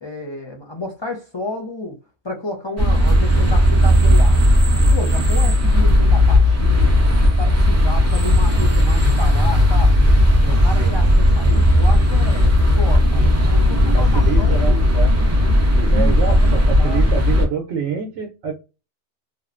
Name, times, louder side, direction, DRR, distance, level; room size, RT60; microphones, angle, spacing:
voice 1, 0.0-2.0 2.2-4.4 4.9-7.0 7.3-10.0 10.4-14.8 15.9-16.2 16.8-17.0, left 2 dB, 45° left, 0.3 m, -31 dB
sound 1, 2.8-17.4, left 1 dB, 20° right, 0.5 m, -15 dB
voice 2, 13.9-15.1 15.7-18.5, right 6 dB, 80° right, 0.9 m, -27 dB
2.9 x 2.0 x 2.4 m
omnidirectional pair, 1.2 m